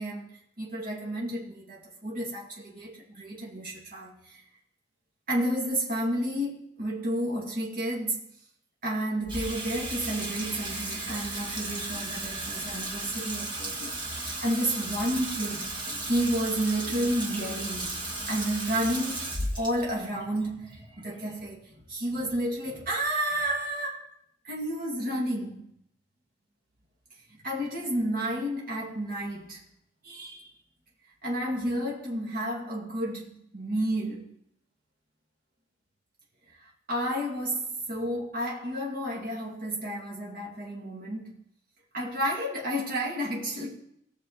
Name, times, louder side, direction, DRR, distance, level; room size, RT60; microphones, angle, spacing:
voice 1, 0.0-4.4 5.3-8.2 8.8-19.3 19.6-24.1 24.4-25.6 27.3-29.6 30.0-30.5 31.2-34.3 36.5-41.4 41.9-43.7, right 1 dB, 45° right, 2.4 m, -31 dB
Water tap faucet / Sink (filling or washing), 9.3-21.6, right 2 dB, 25° right, 1.9 m, -35 dB
19.0 x 6.7 x 4.0 m
head